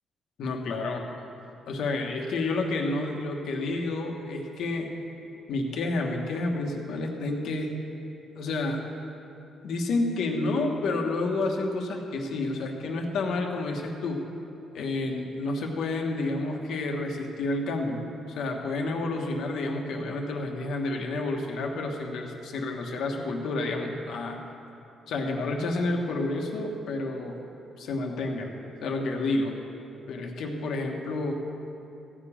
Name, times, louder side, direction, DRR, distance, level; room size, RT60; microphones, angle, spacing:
voice 1, 0.4-1.0 1.7-4.9 5.5-7.7 8.4-8.8 9.6-14.2 14.7-24.4 25.1-27.4 27.8-28.5 28.8-29.5 30.1-31.3, left 2 dB, 75° left, 2 dB, 1.4 m, -30 dB
15.0 x 5.0 x 8.7 m, 2.8 s
cardioid pair, 90°, 0 cm